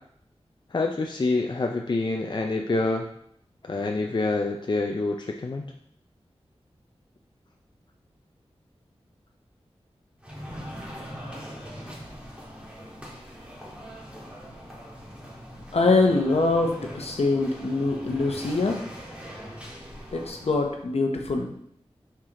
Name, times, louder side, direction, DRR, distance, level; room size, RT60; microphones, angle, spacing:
voice 1, 0.7-3.1 3.7-5.7, left 3 dB, 45° left, 2 dB, 0.5 m, -26 dB
sound 1, 10.2-20.8, equal, 10° right, 1.9 m, -41 dB
voice 2, 15.7-18.8 20.1-21.5, left 3 dB, 70° left, 2 dB, 1.0 m, -24 dB
5.9 x 4.6 x 3.8 m, 0.69 s
wide cardioid pair, 55°, 11 cm